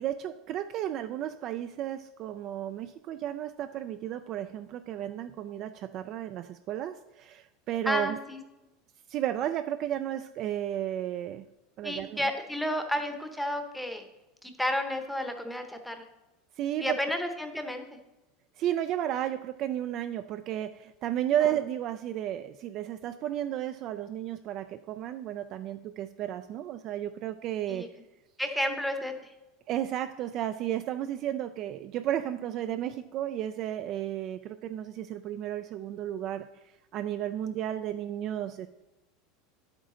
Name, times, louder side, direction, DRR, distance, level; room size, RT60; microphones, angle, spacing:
voice 1, 0.0-8.2 9.1-11.5 11.8-12.2 16.6-17.0 18.6-27.9 29.7-36.5 36.9-38.7, right 11 dB, 35° right, 10 dB, 0.3 m, -33 dB
voice 2, 7.9-8.4 11.8-14.0 14.4-16.1 16.8-17.9 21.4-21.5 27.7-27.9 28.4-29.3, left 1 dB, ahead, 6 dB, 0.8 m, -31 dB
10.5 x 8.1 x 3.8 m, 0.99 s
supercardioid pair, 170°, 0 cm